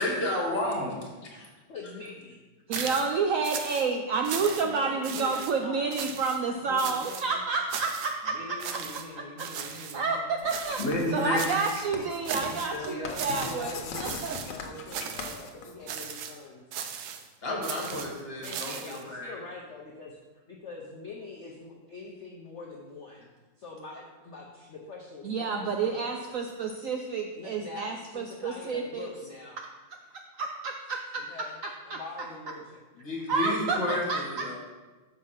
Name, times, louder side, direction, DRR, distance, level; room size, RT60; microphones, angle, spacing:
voice 1, 0.0-1.1 2.8-2.9 10.8-11.6 12.2-12.9 13.3-13.5 13.8-13.9 17.4-19.4 33.0-34.6, left 2 dB, 35° left, -2 dB, 1.6 m, -31 dB
voice 2, 1.7-2.4 4.4-6.0 6.6-7.5 8.3-10.5 12.8-16.6 18.4-20.2 20.5-23.3 23.6-26.3 27.3-29.6 31.2-31.6 31.8-32.8, left 3 dB, 55° left, -1 dB, 0.8 m, -44 dB
sound 1, 2.7-3.1 3.4-3.9 4.2-4.8 5.0-5.5 5.9-6.4 6.8-7.3 7.7-8.2 8.6-9.1 9.4-10.0 10.5-11.0 11.3-11.9 12.2-12.8 13.1-13.7 14.0-14.6 14.9-15.4 15.9-16.4 16.7-17.3 17.6-19.0, right 8 dB, 70° right, 1.0 m, -37 dB
voice 3, 2.7-8.6 9.2-9.3 9.6-10.8 11.1-14.4 25.2-29.1 30.4-31.2 31.6-32.0 33.3-34.6, right 4 dB, 90° right, 3 dB, 0.7 m, -30 dB
Writing, 10.4-16.2, left 5 dB, 75° left, 1.5 m, -41 dB
6.4 x 4.8 x 5.7 m, 1.2 s
omnidirectional pair, 2.0 m